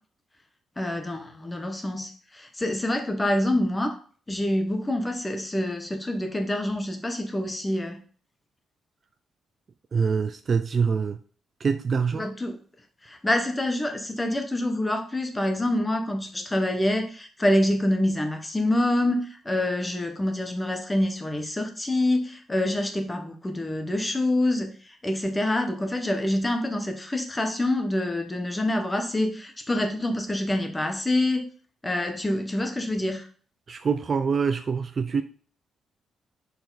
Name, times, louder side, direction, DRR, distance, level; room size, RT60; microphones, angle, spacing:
voice 1, 0.8-4.0 4.3-8.0 12.1-12.6 13.0-31.5 31.8-33.3, left 1 dB, 10° left, 0.9 m, -26 dB
voice 2, 9.9-11.2 11.6-12.3 33.7-35.2, right 5 dB, 35° right, 0.4 m, -25 dB
6.7 x 4.2 x 3.9 m
cardioid pair, 155°, 0 cm